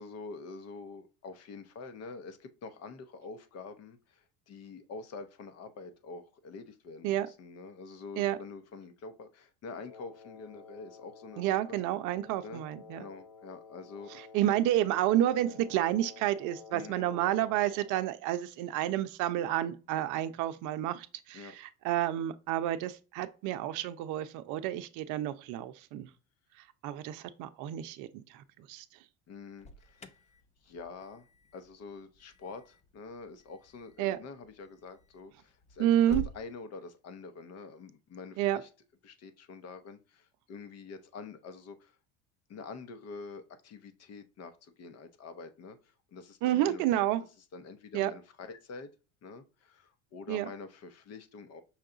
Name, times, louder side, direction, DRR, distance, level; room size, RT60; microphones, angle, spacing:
voice 1, 0.0-11.8 12.4-12.6 12.9-14.3 16.7-17.1 21.3-21.5 29.3-30.1 30.6-31.3 31.5-38.7 39.0-42.0 42.5-46.9 47.5-48.9 49.2-51.6, left 4 dB, 45° left, 0.9 m, -46 dB
Wind instrument woodwind instrument, 9.8-18.1, left 5 dB, 85° left, 1.4 m, -52 dB
voice 2, 11.4-13.0 14.3-26.1 26.8-28.1 28.3-28.8 34.0-34.2 35.8-36.2 38.4-38.6 46.4-47.2 47.9-48.1 50.3-50.5, right 12 dB, 60° right, 0.6 m, -30 dB
Alarm, 29.6-36.4, right 1 dB, 20° left, 0.6 m, -48 dB
5.8 x 2.3 x 3.8 m
supercardioid pair, 90°, 34 cm